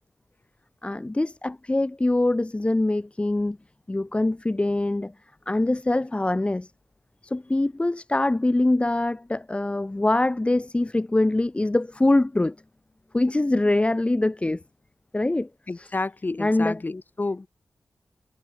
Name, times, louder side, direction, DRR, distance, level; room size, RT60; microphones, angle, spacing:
voice 1, 0.8-3.6 3.9-5.1 5.5-6.7 7.2-12.5 13.1-14.6 15.1-15.5 15.8-15.9 16.4-16.8, left 2 dB, 25° left, 1.1 m, -23 dB
voice 2, 15.7-17.5, left 3 dB, 40° left, 6.6 m, -30 dB
cardioid pair, 45°, 5 cm